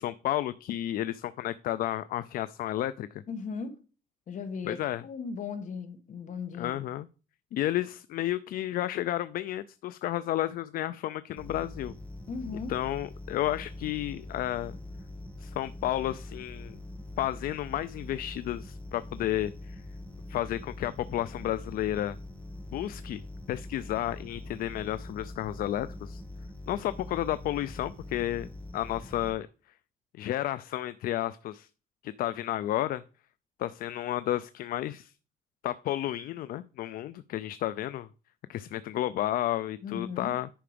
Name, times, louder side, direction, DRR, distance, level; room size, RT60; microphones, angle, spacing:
voice 1, 0.0-3.2 4.6-5.0 6.6-7.1 7.5-11.9 12.7-14.8 15.4-16.7 17.2-19.8 20.3-22.2 22.7-23.2 23.5-26.2 26.7-28.5 28.7-29.5 30.2-31.7 32.0-33.0 33.6-35.1 35.6-38.1 38.5-40.5, left 13 dB, 75° left, 15 dB, 0.4 m, -32 dB
voice 2, 3.3-3.8 4.3-6.8 12.3-12.8 39.8-40.3, left 5 dB, 55° left, 8 dB, 1.7 m, -37 dB
sound 1, 11.4-29.3, left 1 dB, 10° left, 2.0 m, -43 dB
10.0 x 4.8 x 5.1 m, 0.36 s
cardioid pair, 120°, 15 cm